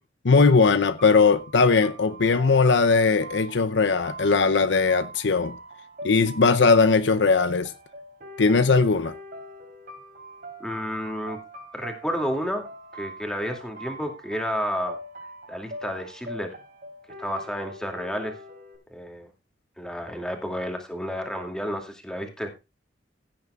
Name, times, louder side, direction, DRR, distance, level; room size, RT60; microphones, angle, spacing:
voice 1, 0.2-5.6 6.0-7.7 8.4-9.1, left 4 dB, 70° left, 0.7 m, -19 dB
sound 1, 1.0-18.8, right 1 dB, 50° right, 3.2 m, -42 dB
voice 2, 10.6-11.4 11.7-12.7 12.9-15.0 15.5-16.6 17.2-18.3 18.9-19.3 19.8-22.5, equal, 5° left, 2.6 m, -31 dB
16.5 x 9.4 x 2.4 m
head